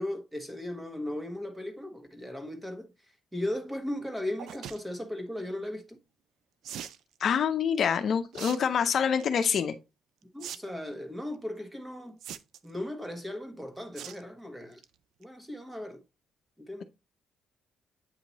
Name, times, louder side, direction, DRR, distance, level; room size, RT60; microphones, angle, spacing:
voice 1, 0.0-2.9 3.3-6.0 10.3-12.2 12.6-14.8 15.2-16.0 16.6-16.8, left 1 dB, 10° right, 1.3 m, -37 dB
sound 1, 4.4-4.8 6.6-7.0 8.3-8.6 8.9-9.3 10.4-10.6 10.9-11.0 12.2-12.7 14.0-14.2 14.6-14.8 15.2-15.3 15.5-15.6, right 9 dB, 80° right, 0.4 m, -41 dB
voice 2, 7.2-9.7, left 7 dB, 60° left, 0.6 m, -26 dB
8.4 x 2.9 x 4.0 m
cardioid pair, 90°, 0 cm